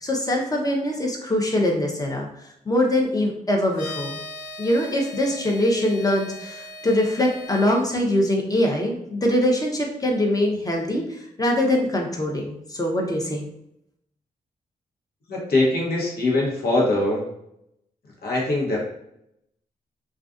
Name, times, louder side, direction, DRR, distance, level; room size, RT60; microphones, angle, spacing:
voice 1, 0.0-2.3 2.7-4.2 4.6-11.0 11.4-13.4, left 1 dB, 20° left, 0 dB, 0.7 m, -23 dB
sound 1, 3.7-7.8, left 1 dB, 90° left, 0.6 m, -39 dB
voice 2, 15.3-17.3 18.2-18.8, left 2 dB, 65° left, -4 dB, 1.0 m, -22 dB
2.4 x 2.3 x 2.4 m, 0.77 s
supercardioid pair, 40°, 17 cm